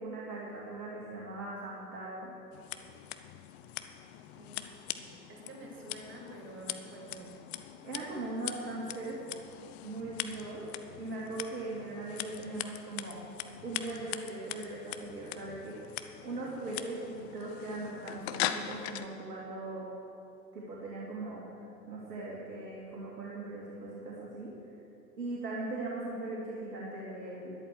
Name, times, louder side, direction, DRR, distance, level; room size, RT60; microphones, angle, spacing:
voice 1, 0.0-2.3 7.8-9.2 9.8-10.7 11.0-13.2 13.6-19.9 20.5-21.4 21.9-24.5 25.2-27.5, right 2 dB, 65° right, -6 dB, 2.8 m, -39 dB
Scissors, 2.5-19.1, left 12 dB, 40° left, 0.7 m, -41 dB
voice 2, 4.4-7.3, right 3 dB, 25° right, 0 dB, 2.1 m, -49 dB
12.5 x 11.0 x 6.2 m, 2.8 s
figure-of-eight pair, 100°, 50 cm